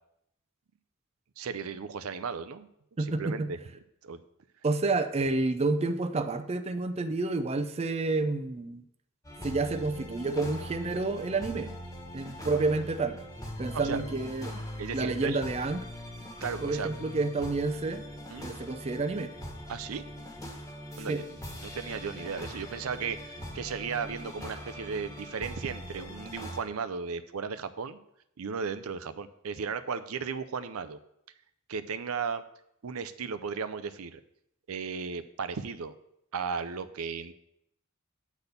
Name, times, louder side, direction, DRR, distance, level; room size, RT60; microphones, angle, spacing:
voice 1, 1.4-2.7 3.0-3.6 4.0-4.2 13.7-14.0 14.8-15.4 16.4-16.9 18.3-18.5 19.7-20.0 21.0-28.0 28.4-31.0 31.7-32.4 32.8-34.2 34.7-35.9 36.3-37.3, right 5 dB, 85° right, 12 dB, 0.5 m, -35 dB
voice 2, 3.0-3.5 4.6-8.8 9.4-11.8 12.1-13.2 13.6-14.6 14.9-15.9 16.6-18.0 18.4-19.3 21.0-21.2, right 3 dB, 30° right, 8 dB, 0.5 m, -29 dB
sound 1, 9.2-26.6, equal, 15° left, 1.4 m, -42 dB
8.3 x 4.2 x 6.7 m, 0.76 s
head